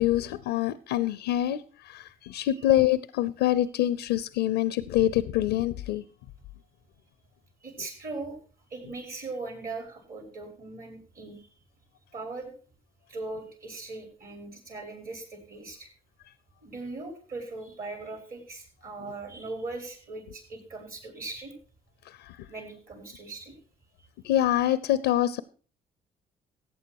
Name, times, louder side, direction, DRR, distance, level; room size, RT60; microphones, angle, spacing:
voice 1, 0.0-6.0 22.3-22.4 24.2-25.4, left 13 dB, 90° left, 17 dB, 0.6 m, -25 dB
voice 2, 7.6-8.4 8.7-11.5 12.1-12.5 13.1-15.9 16.6-21.5 22.5-23.5, right 3 dB, 55° right, 4 dB, 6.3 m, -39 dB
14.5 x 8.8 x 4.7 m, 0.39 s
supercardioid pair, 60°, 18 cm